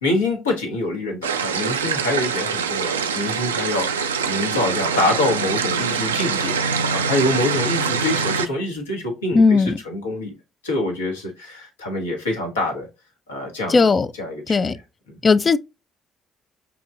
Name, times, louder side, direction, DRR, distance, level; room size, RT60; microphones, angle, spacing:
voice 1, 0.0-6.6 6.9-10.3 10.6-12.9 13.3-13.9 14.1-14.8 15.1-15.2, left 2 dB, 80° left, 0.9 m, -25 dB
sound 1, 1.2-8.5, right 6 dB, 80° right, 0.3 m, -24 dB
voice 2, 9.3-9.8 13.7-14.1 14.5-14.8 15.2-15.6, left 4 dB, 35° left, 0.3 m, -16 dB
6.0 x 2.9 x 2.3 m
figure-of-eight pair, 45°, 0 cm